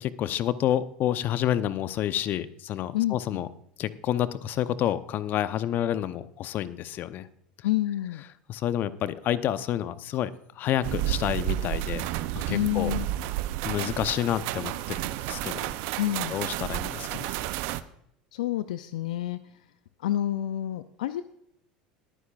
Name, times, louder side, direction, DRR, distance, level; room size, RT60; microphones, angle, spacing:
voice 1, 0.0-3.5 3.8-7.3 8.5-10.3 10.6-12.1 12.3-12.9 13.6-15.0 15.3-15.6 16.3-17.3, left 11 dB, 50° left, 13 dB, 0.8 m, -29 dB
voice 2, 7.6-8.2 12.5-13.1 16.0-16.4 18.3-19.4 20.0-21.2, left 13 dB, 75° left, 13 dB, 0.5 m, -28 dB
sound 1, 10.8-17.8, right 15 dB, 65° right, 0.6 m, -31 dB
22.0 x 9.8 x 2.5 m, 0.74 s
hypercardioid pair, 75°, 4 cm